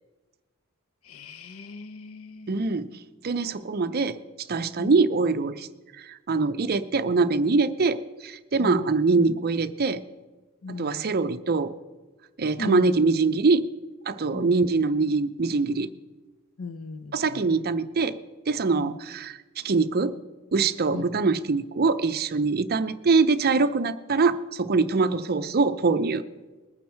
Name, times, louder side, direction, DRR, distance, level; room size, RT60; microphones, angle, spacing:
voice 1, 1.1-2.6 4.8-4.9 8.6-8.9 10.6-11.1 12.6-12.9 14.3-14.5 16.6-17.4 18.8-19.0 20.9-21.0 25.0-25.1, left 3 dB, 70° left, 13 dB, 0.6 m, -37 dB
voice 2, 2.5-2.9 3.2-4.2 4.5-5.7 6.0-10.0 10.7-11.7 12.4-13.7 14.1-15.9 17.1-18.2 18.5-20.2 20.5-26.2, right 4 dB, 45° right, 11 dB, 0.6 m, -23 dB
20.5 x 9.0 x 4.5 m, 1.2 s
head